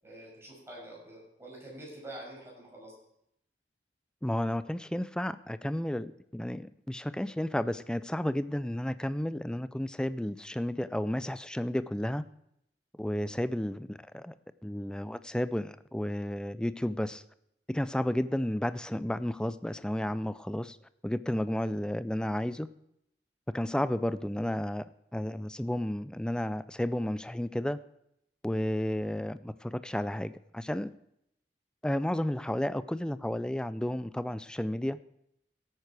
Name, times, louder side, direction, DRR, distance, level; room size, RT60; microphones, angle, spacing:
voice 1, 0.0-2.9, right 1 dB, 15° right, -4 dB, 6.2 m, -46 dB
voice 2, 4.2-12.3 13.0-17.2 17.7-20.8 21.0-22.7 23.5-24.9 25.1-27.8 28.4-30.9 31.8-35.0, left 1 dB, 5° left, 14 dB, 0.4 m, -32 dB
16.0 x 9.0 x 4.8 m, 0.77 s
head